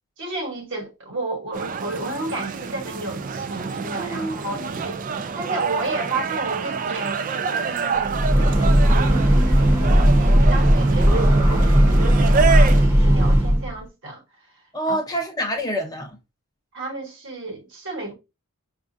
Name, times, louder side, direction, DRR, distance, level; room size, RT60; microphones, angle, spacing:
voice 1, 0.2-5.0 5.3-8.3 8.6-14.2 14.9-15.0 16.7-18.1, right 2 dB, 55° right, 1.2 m, -32 dB
sound 1, 1.5-12.9, right 5 dB, 40° right, 0.4 m, -27 dB
voice 2, 4.0-4.7 14.7-16.1, right 1 dB, 15° left, 0.6 m, -27 dB
Breathing / Train, 8.0-13.7, equal, 10° right, 0.8 m, -16 dB
6.0 x 2.4 x 2.5 m
head